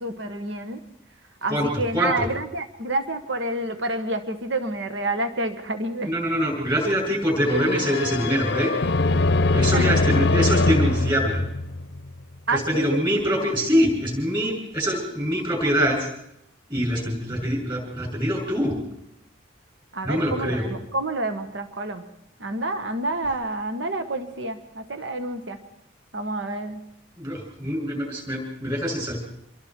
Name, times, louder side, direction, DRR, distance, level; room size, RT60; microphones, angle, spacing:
voice 1, 0.0-0.8 1.4-6.1 9.7-9.8 12.5-13.0 19.9-22.0 22.4-25.6 26.1-26.8, right 2 dB, 70° right, 8 dB, 1.5 m, -28 dB
voice 2, 1.5-2.3 6.0-8.7 9.5-11.4 12.5-16.1 16.7-18.7 20.0-20.7 27.2-29.2, equal, 25° right, 0 dB, 7.1 m, -24 dB
sound 1, 7.4-12.2, left 2 dB, 60° left, 0.7 m, -22 dB
26.5 x 22.0 x 4.6 m, 0.77 s
head